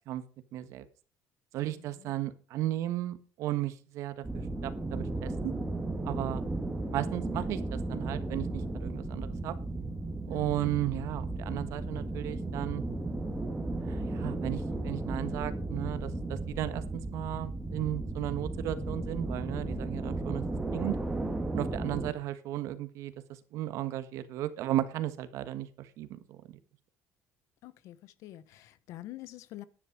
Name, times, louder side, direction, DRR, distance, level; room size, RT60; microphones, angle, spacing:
voice 1, 0.5-0.8 1.5-5.5 6.0-6.4 6.9-9.5 10.3-12.8 13.8-16.8 17.1-20.4 20.7-21.0 21.5-26.6, right 13 dB, 65° right, 12 dB, 1.4 m, -35 dB
voice 2, 1.6-2.1 10.3-10.7 27.6-29.6, left 14 dB, 70° left, 17 dB, 1.0 m, -47 dB
sound 1, 4.2-22.1, right 2 dB, 10° right, 1.6 m, -35 dB
11.0 x 10.0 x 4.8 m, 0.36 s
cardioid pair, 155°, 5 cm